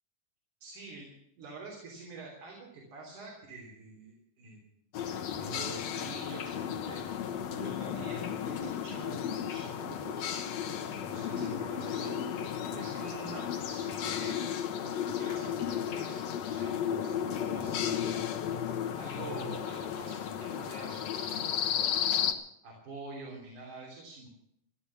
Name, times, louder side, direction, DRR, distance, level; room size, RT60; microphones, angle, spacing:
voice 1, 0.6-4.6 5.4-7.0 7.6-12.1 12.5-14.4 14.8-18.3 19.0-22.0 22.6-24.3, right 3 dB, 70° right, -2 dB, 4.8 m, -46 dB
sound 1, 4.9-22.3, left 9 dB, 65° left, 2.3 m, -34 dB
15.5 x 11.5 x 7.1 m, 0.74 s
omnidirectional pair, 3.6 m